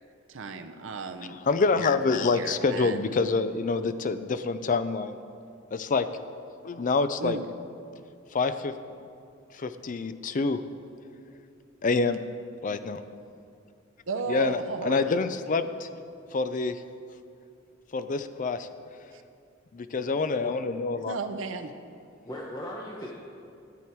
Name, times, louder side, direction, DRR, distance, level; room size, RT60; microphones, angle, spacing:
voice 1, 0.3-1.4 1.7-3.1 7.2-7.4 14.1-15.0 19.1-19.2 21.1-21.7, right 4 dB, 70° right, 7 dB, 0.7 m, -35 dB
voice 2, 1.3-5.2 5.7-6.1 6.6-7.4 8.3-8.7 9.5-10.6 11.8-12.2 12.6-13.0 14.3-15.9 16.3-16.8 17.9-18.7 19.7-21.2, left 4 dB, 40° left, 11 dB, 0.5 m, -27 dB
voice 3, 20.1-20.5 22.2-23.1, left 1 dB, 20° left, -3 dB, 0.9 m, -38 dB
13.0 x 9.0 x 4.6 m, 2.5 s
head